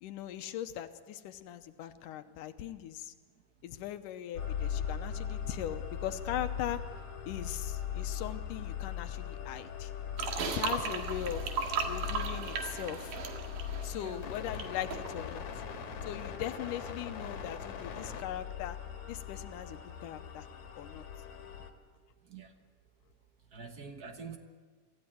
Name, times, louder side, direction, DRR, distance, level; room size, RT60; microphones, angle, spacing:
voice 1, 0.0-3.1 3.6-6.8 7.3-9.9 10.5-11.4 11.9-13.1 13.8-15.4 16.1-18.8 19.1-20.5 20.8-21.0, left 11 dB, 90° left, 9 dB, 2.5 m, -40 dB
sound 1, 4.4-21.7, left 8 dB, 65° left, 2.8 m, -40 dB
sound 2, 10.2-14.6 14.9-15.1, right 5 dB, 85° right, 3.5 m, -36 dB
voice 2, 10.7-11.4 13.9-14.3 22.3-22.5 23.5-24.4, right 5 dB, 65° right, 6 dB, 0.9 m, -46 dB
24.5 x 15.0 x 9.2 m, 1.5 s
omnidirectional pair, 3.7 m